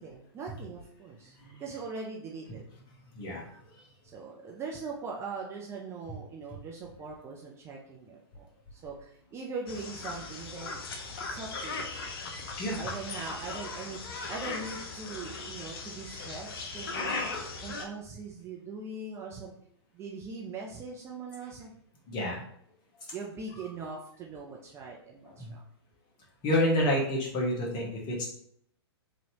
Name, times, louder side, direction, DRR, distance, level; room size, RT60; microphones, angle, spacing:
voice 1, 0.0-2.6 4.1-10.8 11.2-11.9 12.7-14.0 14.3-19.5 19.9-21.7 22.2-22.4 23.1-25.6, right 4 dB, 20° right, -1 dB, 0.4 m, -41 dB
sound 1, 9.7-17.8, left 3 dB, 60° left, 0.7 m, -38 dB
voice 2, 22.1-22.4 25.4-25.5 26.4-28.3, left 1 dB, 30° left, -2 dB, 1.1 m, -28 dB
3.0 x 2.6 x 2.8 m, 0.67 s
figure-of-eight pair, 115°, 14 cm